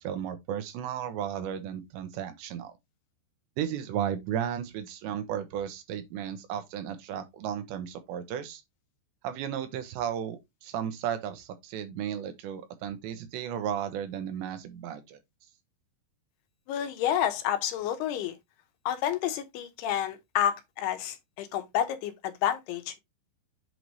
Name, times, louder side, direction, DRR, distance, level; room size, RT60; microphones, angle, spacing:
voice 1, 0.0-2.7 3.6-8.6 9.2-15.2, right 9 dB, 85° right, 3.3 m, -34 dB
voice 2, 16.7-18.4 18.9-23.0, left 10 dB, 75° left, 2.7 m, -29 dB
7.8 x 3.2 x 4.0 m
omnidirectional pair, 5.0 m